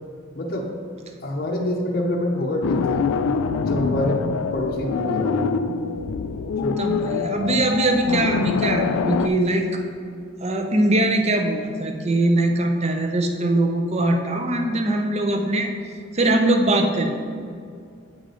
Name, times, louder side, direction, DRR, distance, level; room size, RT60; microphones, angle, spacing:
voice 1, 0.3-0.7 1.2-3.0 3.6-5.5 6.6-6.8 7.5-7.6, left 1 dB, 45° left, 0 dB, 0.7 m, -26 dB
sound 1, 2.6-9.3, left 5 dB, 80° left, 0.3 m, -24 dB
voice 2, 6.8-9.8 10.4-15.7 16.1-17.1, right 1 dB, 30° right, 4 dB, 0.5 m, -21 dB
8.5 x 4.9 x 3.8 m, 2.3 s
head